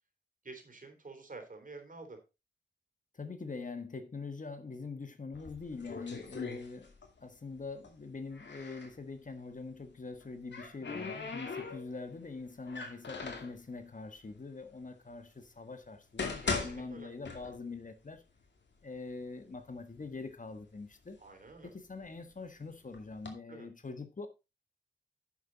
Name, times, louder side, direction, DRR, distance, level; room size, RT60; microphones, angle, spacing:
voice 1, 0.4-2.2 11.5-11.7 16.5-17.1 21.2-21.7 23.5-23.7, right 3 dB, 50° right, 3.5 m, -49 dB
voice 2, 3.1-6.9 7.2-18.2 18.8-21.2 21.6-24.3, left 4 dB, 45° left, 1.4 m, -44 dB
sound 1, 5.3-7.2 7.5-8.9 10.0-12.1 12.6-13.6 14.4-14.5 15.1-15.2 15.8-17.8 18.2-18.3 19.0-19.1 19.4-20.1 20.6-22.3 22.9-23.3, left 4 dB, 80° left, 2.4 m, -40 dB
10.5 x 7.1 x 4.0 m
wide cardioid pair, 70°, 18 cm